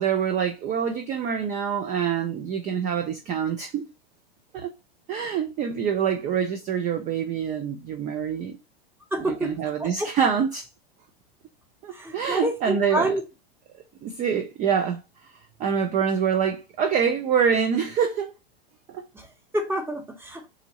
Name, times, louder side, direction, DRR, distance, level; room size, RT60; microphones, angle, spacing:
voice 1, 0.0-3.9 4.5-4.7 5.1-8.6 9.3-10.7 11.8-13.1 14.0-15.0 15.6-18.3 18.9-19.1, right 7 dB, 25° right, 0.4 m, -25 dB
voice 2, 9.1-9.5 9.8-10.1 11.9-13.2 19.1-20.5, right 1 dB, 5° right, 0.9 m, -28 dB
3.8 x 2.6 x 2.9 m
hypercardioid pair, 110°, 31 cm